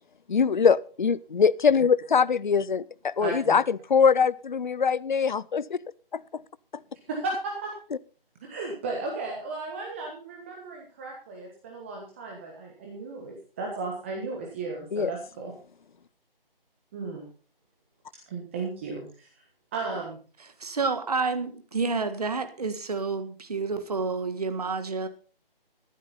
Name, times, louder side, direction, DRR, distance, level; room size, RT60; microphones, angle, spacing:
voice 1, 0.3-5.8 6.1-6.4 14.9-15.1, left 6 dB, 55° left, 20 dB, 0.5 m, -23 dB
voice 2, 3.2-3.5 7.1-7.8 8.5-15.5 16.9-17.2 18.3-19.4 19.7-20.2, right 3 dB, 15° right, -1 dB, 1.4 m, -35 dB
voice 3, 20.6-25.1, right 4 dB, 40° right, 9 dB, 1.6 m, -29 dB
14.0 x 12.0 x 4.1 m, 0.40 s
figure-of-eight pair, 160°, 29 cm